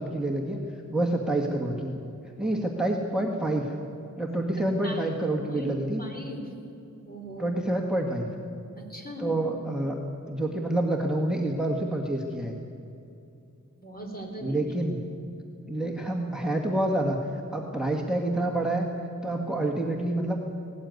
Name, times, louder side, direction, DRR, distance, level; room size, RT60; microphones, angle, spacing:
voice 1, 0.0-2.0 2.4-3.7 4.2-6.0 7.4-8.3 9.2-10.0 10.3-12.5 14.4-15.0 15.7-18.9 19.2-20.4, right 1 dB, ahead, 1 dB, 1.8 m, -28 dB
voice 2, 6.0-6.4 7.0-7.5 8.9-9.3 13.8-14.6, equal, 30° left, 1 dB, 4.1 m, -39 dB
18.0 x 18.0 x 9.5 m, 2.7 s
wide cardioid pair, 100°, 30 cm